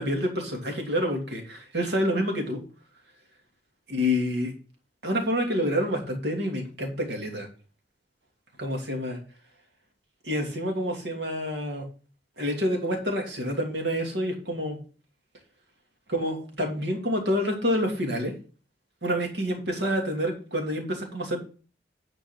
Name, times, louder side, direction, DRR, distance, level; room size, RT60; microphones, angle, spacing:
voice 1, 0.0-2.6 3.9-4.5 5.0-7.5 8.6-9.2 10.2-11.9 12.4-14.8 16.1-18.3 19.0-21.4, equal, 75° right, 2 dB, 2.7 m, -28 dB
10.5 x 4.7 x 5.8 m, 0.38 s
head